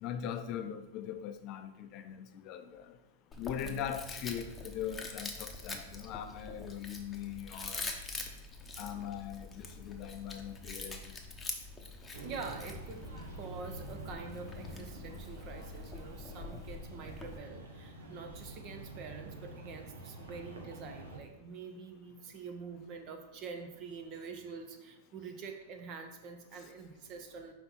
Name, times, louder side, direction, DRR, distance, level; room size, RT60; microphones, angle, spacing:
voice 1, 0.0-3.0 3.4-7.9 8.8-11.1 26.5-26.6, left 9 dB, 45° left, 0.6 m, -41 dB
Chewing mastication, 3.3-17.4, left 3 dB, 15° left, 0.9 m, -45 dB
sound 1, 12.1-21.2, right 1 dB, 80° right, 1.2 m, -47 dB
voice 2, 12.2-27.5, right 5 dB, 45° right, 1.0 m, -46 dB
5.5 x 4.2 x 4.5 m
hypercardioid pair, 110°, 0 cm